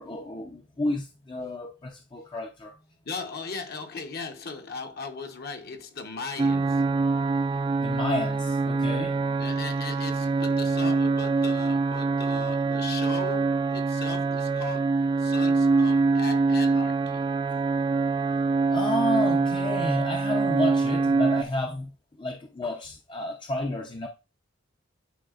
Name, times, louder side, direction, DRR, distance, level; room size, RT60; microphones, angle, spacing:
voice 1, 0.0-2.7 7.8-9.2 18.7-24.1, left 1 dB, 25° left, 0.5 m, -31 dB
voice 2, 3.0-7.1 9.4-17.2, left 4 dB, 50° left, 0.9 m, -38 dB
sound 1, 6.4-21.4, right 4 dB, 25° right, 0.3 m, -24 dB
9.2 x 4.1 x 2.4 m
head